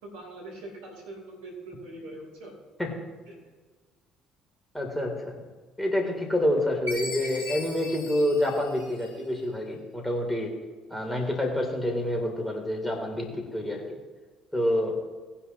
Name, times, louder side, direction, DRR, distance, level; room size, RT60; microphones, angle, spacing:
voice 1, 0.0-2.5 3.3-3.4, right 2 dB, 70° right, -2 dB, 4.2 m, -42 dB
voice 2, 4.7-5.4 5.8-10.5 10.9-13.8 14.5-15.0, left 1 dB, 10° left, 1 dB, 3.5 m, -27 dB
Chime, 6.9-9.4, left 3 dB, 90° right, 4.1 m, -39 dB
19.5 x 10.0 x 3.2 m, 1.4 s
figure-of-eight pair, 50°, 0 cm